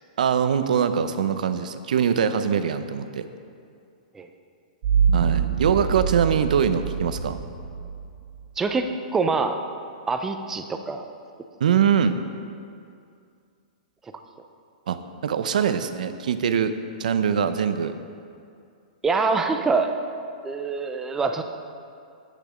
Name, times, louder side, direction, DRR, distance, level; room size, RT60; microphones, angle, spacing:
voice 1, 0.2-3.3 5.1-7.4 11.6-12.2 14.9-15.0 15.2-16.7 17.0-18.0, right 7 dB, 75° right, 10 dB, 0.6 m, -23 dB
sound 1, 4.8-8.4, right 6 dB, 45° right, 1.1 m, -25 dB
voice 2, 8.6-9.6 10.1-11.1 19.0-19.9 20.4-21.4, right 4 dB, 10° right, 7 dB, 0.4 m, -25 dB
8.4 x 6.7 x 4.9 m, 2.4 s
hypercardioid pair, 165°, 4 cm